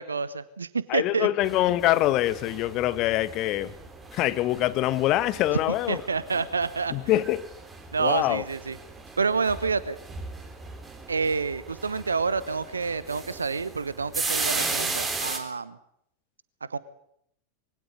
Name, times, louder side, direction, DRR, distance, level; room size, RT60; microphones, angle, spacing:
voice 1, 0.0-1.3 5.9-6.9 7.9-8.8 9.2-10.0 11.1-15.8 16.7-16.8, right 4 dB, 75° right, 1.0 m, -28 dB
voice 2, 0.9-3.7 4.1-6.0 6.9-7.4 8.0-8.4, left 15 dB, 40° left, 1.4 m, -24 dB
sound 1, 1.4-15.4, right 3 dB, 15° right, 3.7 m, -36 dB
22.5 x 17.5 x 9.6 m
figure-of-eight pair, 90°, 0 cm